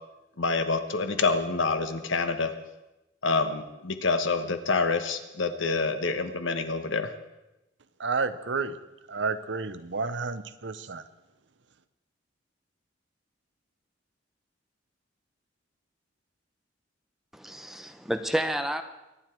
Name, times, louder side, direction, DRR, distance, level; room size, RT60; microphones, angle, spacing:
voice 1, 0.4-2.5 3.2-7.1, left 4 dB, 80° left, 8 dB, 1.2 m, -27 dB
voice 2, 8.0-8.8 9.1-11.0, right 4 dB, 65° right, 13 dB, 0.8 m, -30 dB
voice 3, 17.3-18.8, right 1 dB, ahead, 7 dB, 0.8 m, -30 dB
23.5 x 9.9 x 4.5 m, 0.97 s
head